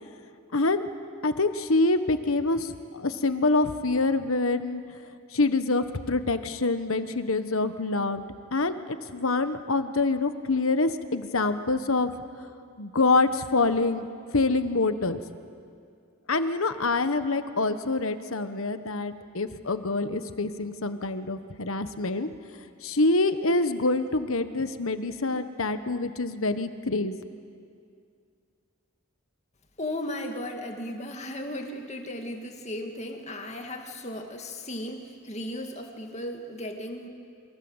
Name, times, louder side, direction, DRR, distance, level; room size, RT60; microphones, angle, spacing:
voice 1, 0.5-0.9 1.2-4.8 5.3-8.2 8.5-12.1 12.8-14.1 14.3-15.2 16.3-22.3 22.8-27.2, left 3 dB, 70° left, 10 dB, 1.3 m, -26 dB
voice 2, 29.8-37.1, left 1 dB, 30° left, 3 dB, 2.2 m, -36 dB
27.5 x 23.5 x 8.1 m, 2.3 s
head